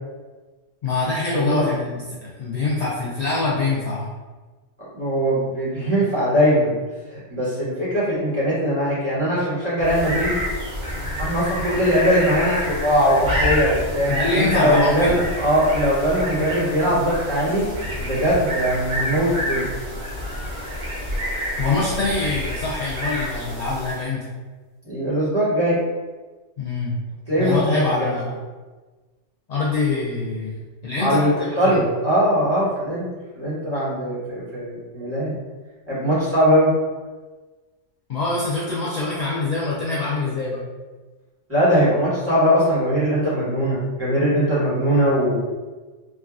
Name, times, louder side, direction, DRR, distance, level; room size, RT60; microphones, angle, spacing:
voice 1, 0.8-4.1 14.1-15.2 21.6-24.3 26.6-27.0 27.4-28.4 29.5-31.8 38.1-40.6 44.9-45.0, left 3 dB, 65° left, -7 dB, 0.4 m, -24 dB
voice 2, 1.3-1.7 4.8-6.7 7.1-10.4 11.2-17.7 18.0-20.0 24.8-25.8 27.3-28.1 31.0-33.0 33.3-35.4 35.9-36.7 41.5-45.4, equal, 10° right, -12 dB, 1.3 m, -21 dB
sound 1, 9.8-24.1, equal, 65° right, 1.2 m, -28 dB
3.2 x 2.3 x 2.4 m, 1.3 s
omnidirectional pair, 1.2 m